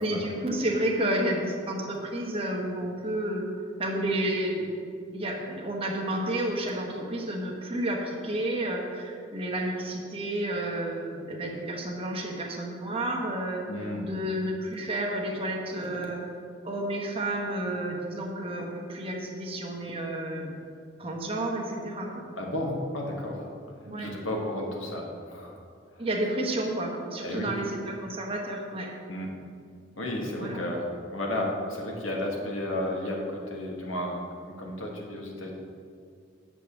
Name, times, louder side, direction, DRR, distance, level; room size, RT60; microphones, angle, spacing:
voice 1, 0.0-3.5 3.8-4.7 5.1-16.2 16.6-20.5 21.0-22.2 23.8-24.1 26.0-28.9 30.4-30.6, right 1 dB, 30° right, -1 dB, 1.2 m, -31 dB
voice 2, 13.7-14.1 22.4-23.5 24.0-25.5 25.9-26.0 27.2-27.6 29.1-29.3 30.0-30.8 31.1-34.2 34.6-35.5, left 1 dB, 85° left, 0 dB, 1.6 m, -32 dB
7.6 x 5.0 x 7.0 m, 2.3 s
head